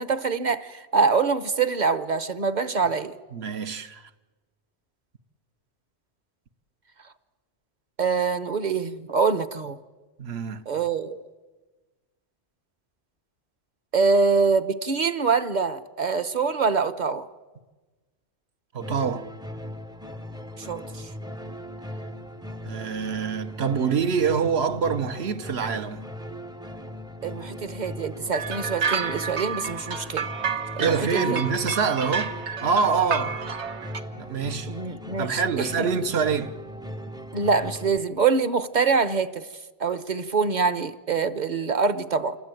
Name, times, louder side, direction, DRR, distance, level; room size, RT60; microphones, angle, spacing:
voice 1, 0.0-3.1 8.0-9.8 10.7-11.2 13.9-17.3 20.6-21.1 27.2-30.3 30.8-31.4 34.7-35.9 37.3-39.5 39.8-42.4, right 5 dB, 45° right, 1.1 m, -25 dB
voice 2, 3.3-4.1 10.2-10.6 18.7-19.3 22.6-26.1 30.8-32.4 32.6-33.5 34.2-34.7 35.2-36.5, right 6 dB, 70° right, 1.3 m, -25 dB
sound 1, 18.8-38.0, equal, 5° right, 0.5 m, -38 dB
sound 2, 28.3-34.0, right 6 dB, 85° right, 1.4 m, -30 dB
27.5 x 21.0 x 9.2 m
omnidirectional pair, 1.1 m